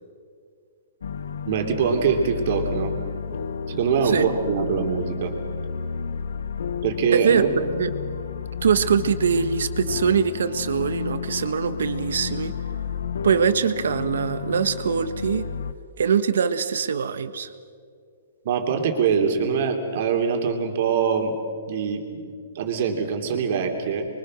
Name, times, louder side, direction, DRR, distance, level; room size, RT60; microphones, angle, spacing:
sound 1, 1.0-15.7, left 6 dB, 85° left, 1.1 m, -32 dB
voice 1, 1.5-2.9 3.7-5.3 6.8-7.5 18.4-21.4 21.7-22.2 22.5-24.1, right 6 dB, 40° right, 4 dB, 3.0 m, -23 dB
voice 2, 7.1-7.4 7.8-7.9 8.6-12.5 13.2-15.5 16.0-17.5, right 7 dB, 70° right, 12 dB, 1.4 m, -23 dB
26.5 x 23.0 x 6.4 m, 2.2 s
hypercardioid pair, 175°, 0 cm